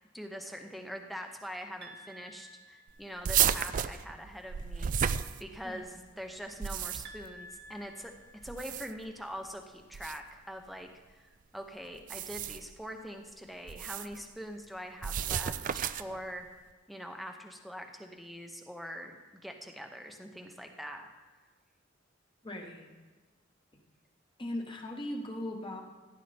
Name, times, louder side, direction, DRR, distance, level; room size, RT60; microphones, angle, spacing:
voice 1, 0.1-8.1 8.4-16.5 16.9-19.2 19.4-21.1, equal, ahead, 4 dB, 0.8 m, -43 dB
sound 1, 1.8-3.5 7.0-9.1, right 1 dB, 60° right, 1.2 m, -52 dB
sound 2, 3.2-5.9 6.4-7.3 8.4-9.1 9.9-10.2 12.0-12.7 13.7-14.2 15.0-16.2, right 9 dB, 40° right, 0.3 m, -32 dB
voice 2, 22.4-22.9 24.4-25.8, left 1 dB, 25° left, 2 dB, 1.2 m, -38 dB
15.5 x 10.0 x 3.4 m, 1.3 s
head